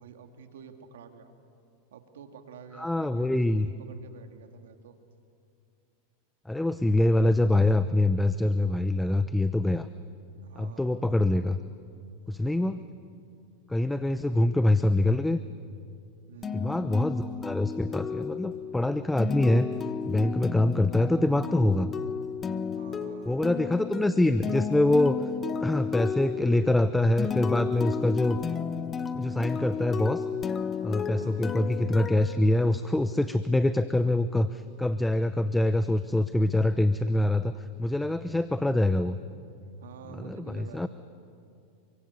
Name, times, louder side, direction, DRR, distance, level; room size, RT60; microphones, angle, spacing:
voice 1, 0.0-1.3 1.9-5.0 10.4-11.0 12.5-12.9 16.3-16.9 22.6-23.4 23.6-23.9 31.2-31.6 39.8-40.9, right 7 dB, 85° right, 6 dB, 2.3 m, -48 dB
voice 2, 2.8-3.7 6.5-9.9 10.6-11.6 12.3-12.8 13.7-15.4 16.5-19.7 20.1-21.9 23.3-25.2 25.6-28.4 29.1-30.2 30.8-39.2 40.2-40.9, left 1 dB, 5° left, 12 dB, 0.8 m, -25 dB
sound 1, 16.4-33.1, left 6 dB, 25° left, 1.3 m, -33 dB
29.0 x 24.0 x 8.3 m, 2.4 s
hypercardioid pair, 115°, 0 cm